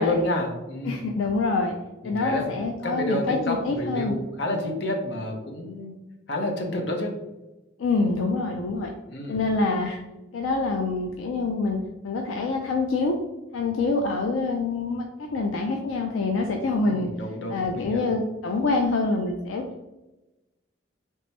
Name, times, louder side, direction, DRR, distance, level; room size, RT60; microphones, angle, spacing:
voice 1, 0.0-1.1 2.0-2.5 2.8-5.9 6.3-7.1 9.1-9.4 16.8-18.1, left 1 dB, 60° left, 2 dB, 0.7 m, -29 dB
voice 2, 0.9-1.7 2.0-4.2 7.8-8.9 9.3-10.0 10.3-13.2 13.5-17.1 17.5-19.6, left 3 dB, 85° left, 3 dB, 0.4 m, -26 dB
3.3 x 2.9 x 3.1 m, 1.0 s
head